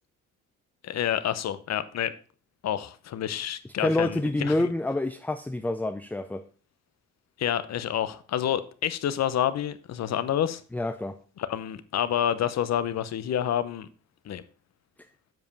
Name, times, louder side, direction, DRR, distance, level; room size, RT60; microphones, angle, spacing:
voice 1, 0.8-2.1 2.6-4.7 7.4-10.6 11.4-13.9 14.2-14.4, left 10 dB, 60° left, 0.8 m, -28 dB
voice 2, 3.8-6.4 10.7-11.2, left 2 dB, 5° left, 0.5 m, -27 dB
7.7 x 5.0 x 5.3 m
cardioid pair, 90°, 30 cm